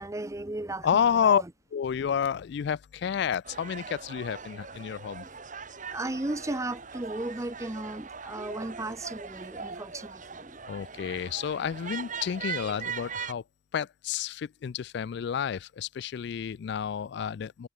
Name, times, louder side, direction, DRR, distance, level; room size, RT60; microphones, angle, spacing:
voice 1, 0.0-1.4 5.9-10.6, right 2 dB, 15° right, 0.7 m, -35 dB
voice 2, 0.8-1.4 1.7-5.2 10.7-13.4 13.7-17.7, left 8 dB, 65° left, 0.3 m, -30 dB
sound 1, 3.4-13.3, right 6 dB, 45° right, 3.6 m, -40 dB
head